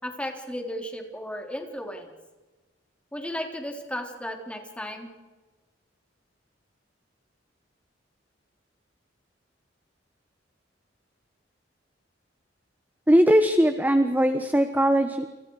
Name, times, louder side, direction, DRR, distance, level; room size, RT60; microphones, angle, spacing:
voice 1, 0.0-2.1 3.1-5.1, equal, 5° left, 3 dB, 3.7 m, -34 dB
voice 2, 13.1-15.3, equal, 10° right, 8 dB, 1.2 m, -20 dB
29.5 x 27.5 x 4.9 m, 1.2 s
head